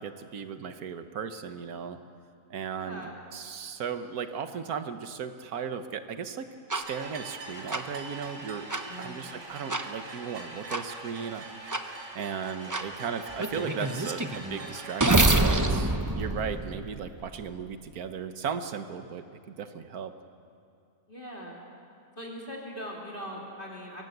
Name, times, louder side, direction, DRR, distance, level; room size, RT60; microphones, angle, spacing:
voice 1, 0.0-2.0 2.5-3.0 3.3-8.7 9.0-11.4 11.8-20.1, right 7 dB, 65° right, 9 dB, 1.5 m, -36 dB
voice 2, 2.7-3.1 8.9-9.4 21.1-21.6 22.1-24.0, equal, 30° left, -3 dB, 3.3 m, -41 dB
sound 1, 6.7-6.8 7.7-7.8 8.7-8.8 9.7-9.8 10.7-10.8 11.7-11.8 12.7-12.8 13.4-17.3, right 2 dB, 20° right, 0.5 m, -26 dB
sound 2, 6.8-15.3, right 2 dB, 90° right, 3.2 m, -43 dB
23.0 x 17.5 x 8.0 m, 2.5 s
omnidirectional pair, 1.7 m